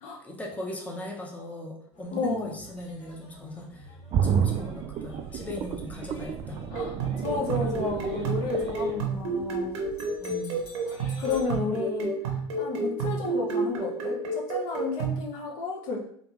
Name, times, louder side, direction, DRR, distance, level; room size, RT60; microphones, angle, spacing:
voice 1, 0.2-3.9 4.2-6.6 10.2-10.6, left 1 dB, 10° left, -1 dB, 0.7 m, -39 dB
sound 1, 1.9-11.6, left 1 dB, 75° left, 1.4 m, -48 dB
voice 2, 2.1-2.6 6.7-6.9 7.2-9.8 11.2-12.1 12.6-16.0, left 3 dB, 60° left, -1 dB, 0.8 m, -32 dB
sound 2, 4.1-9.9 10.3-10.4, right 8 dB, 40° right, 0.4 m, -31 dB
sound 3, 6.8-15.3, right 3 dB, 75° right, 0.7 m, -30 dB
3.3 x 2.5 x 3.0 m, 0.64 s
hypercardioid pair, 80°, 15 cm